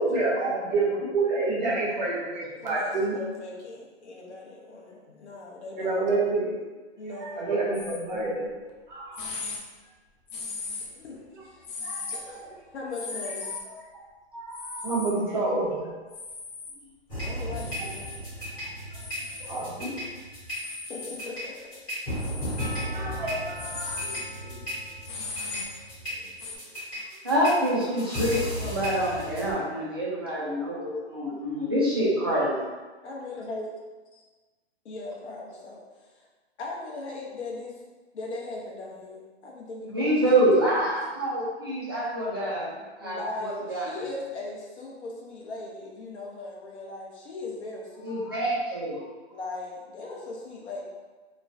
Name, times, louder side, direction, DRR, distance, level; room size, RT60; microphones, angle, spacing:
voice 1, 0.0-3.1 5.8-6.5 7.1-8.5 8.9-9.3 11.8-12.5 13.4-13.5 14.3-15.9 17.8-17.9 18.9-19.0 19.5-20.0 22.7-24.0, right 3 dB, 45° right, -5 dB, 0.8 m, -28 dB
voice 2, 2.6-6.0 7.0-7.4 7.8-7.9 10.8-11.2 11.4-11.6 12.1-13.5 17.2-18.1 20.9-21.6 33.0-33.7 34.1-34.2 34.8-36.3 36.6-37.8 38.1-40.9 43.0-48.2 49.3-50.8, left 2 dB, 85° left, -3 dB, 0.8 m, -39 dB
sound 1, 7.7-8.0 8.7-8.8 9.1-9.6 10.3-11.1 11.6-12.2 12.9-13.6 14.5-15.1 16.1-16.7 17.5-18.2 19.0-19.6 20.5-21.2 22.1-22.9 23.4-26.6, left 4 dB, 50° left, 0.5 m, -38 dB
sound 2, 17.1-29.5, equal, 15° left, 1.1 m, -35 dB
voice 3, 27.2-32.5 39.9-42.7 43.0-43.9 48.0-49.0, right 1 dB, 25° right, -7 dB, 0.3 m, -26 dB
3.0 x 2.1 x 2.5 m, 1.3 s
hypercardioid pair, 165°, 33 cm